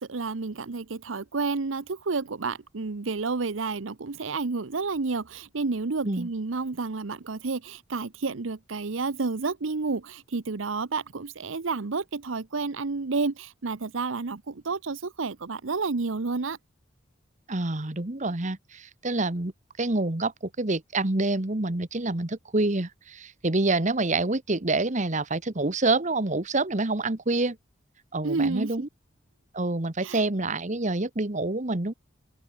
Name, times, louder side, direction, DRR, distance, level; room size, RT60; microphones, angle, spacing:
voice 1, 0.0-16.6 28.2-28.7 30.0-30.2, right 4 dB, 85° right, 0.8 m, -30 dB
voice 2, 17.5-19.5 19.8-27.6 28.1-28.9 29.5-31.9, right 2 dB, 40° right, 1.4 m, -27 dB
open air
head